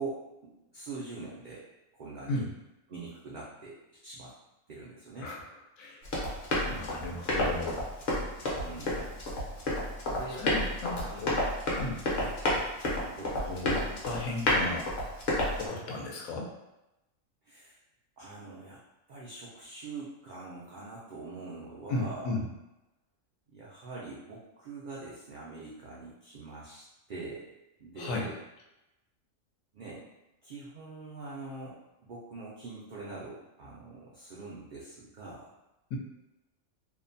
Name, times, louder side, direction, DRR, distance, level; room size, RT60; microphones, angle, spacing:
voice 1, 0.0-1.7 1.9-2.5 2.9-4.3 4.7-5.3 8.5-9.0 10.0-10.5 10.9-11.6 12.1-12.3 13.1-13.4 17.5-17.8 18.2-18.8 19.1-22.3 23.5-27.5 27.8-28.4 29.7-30.0 30.4-31.8 32.0-35.5, right 3 dB, 80° right, -6 dB, 0.4 m, -43 dB
Run, 6.0-15.7, left 1 dB, 55° left, 0.9 m, -30 dB
voice 2, 6.7-7.9 10.3-11.4 11.7-12.0 13.5-14.9 15.6-16.5 21.9-22.4 28.0-28.3 35.9-36.0, left 2 dB, 85° left, -1 dB, 1.0 m, -35 dB
2.6 x 2.1 x 2.6 m, 0.95 s
omnidirectional pair, 1.4 m